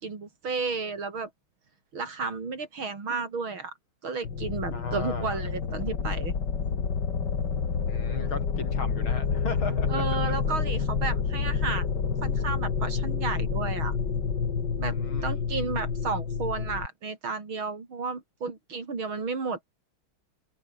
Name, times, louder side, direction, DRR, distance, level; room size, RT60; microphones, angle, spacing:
voice 1, 0.0-1.3 1.9-3.7 4.0-6.3 9.9-13.9 14.8-15.0 15.2-19.6, right 4 dB, 85° right, 4.8 m, -32 dB
sound 1, 4.2-16.9, left 6 dB, 60° left, 2.9 m, -29 dB
voice 2, 4.7-5.3 7.9-9.9 14.8-15.3, left 3 dB, 80° left, 5.7 m, -36 dB
omnidirectional pair, 2.2 m